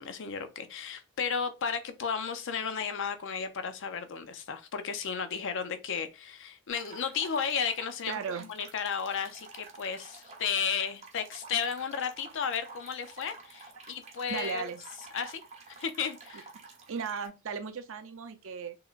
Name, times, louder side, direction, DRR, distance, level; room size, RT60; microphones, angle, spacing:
voice 1, 0.0-14.7 15.1-15.4 15.7-16.5, left 6 dB, 60° left, 0.5 m, -34 dB
sound 1, 6.7-17.3, right 4 dB, 30° right, 0.8 m, -50 dB
voice 2, 8.0-8.5 14.3-14.8 16.3-16.4 16.9-18.8, right 6 dB, 60° right, 0.5 m, -36 dB
3.7 x 3.0 x 2.4 m
head